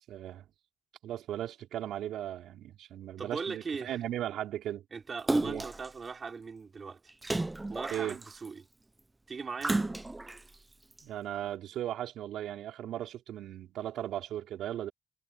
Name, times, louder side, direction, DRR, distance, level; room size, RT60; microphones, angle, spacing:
voice 1, 0.1-0.4 1.0-4.8 5.4-5.7 7.9-8.2 11.0-14.9, right 12 dB, 80° right, 4.9 m, -37 dB
voice 2, 3.2-4.0 4.9-7.1 7.7-8.7 9.3-9.8, right 5 dB, 40° right, 5.4 m, -39 dB
Splash splatter, 5.3-5.9 7.2-8.5 9.6-10.4 11.0-11.1, right 2 dB, 15° right, 0.8 m, -32 dB
cardioid pair, 90°, 0 cm